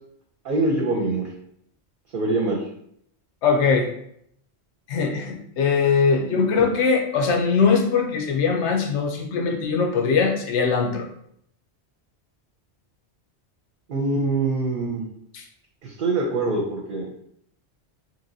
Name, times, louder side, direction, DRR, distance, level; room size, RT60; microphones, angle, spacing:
voice 1, 0.4-1.3 2.1-2.6 6.3-6.4 13.9-15.0 15.8-17.1, right 2 dB, 60° right, -1 dB, 0.7 m, -24 dB
voice 2, 3.4-3.9 4.9-11.0, left 5 dB, 90° left, 3 dB, 0.9 m, -21 dB
2.9 x 2.8 x 2.6 m, 0.69 s
omnidirectional pair, 1.1 m